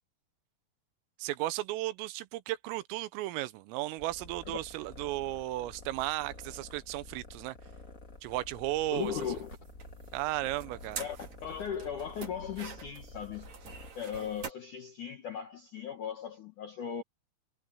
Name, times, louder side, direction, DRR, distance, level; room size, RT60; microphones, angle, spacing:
voice 1, 1.2-7.6 8.2-9.2 10.1-11.1, right 17 dB, 90° right, 3.6 m, -35 dB
sound 1, 3.7-14.5, right 5 dB, 40° right, 3.3 m, -48 dB
sound 2, 4.0-13.9, left 2 dB, 40° left, 1.1 m, -50 dB
voice 2, 8.9-9.5 11.0-13.5 14.0-17.0, left 8 dB, 70° left, 1.9 m, -38 dB
omnidirectional pair, 5.8 m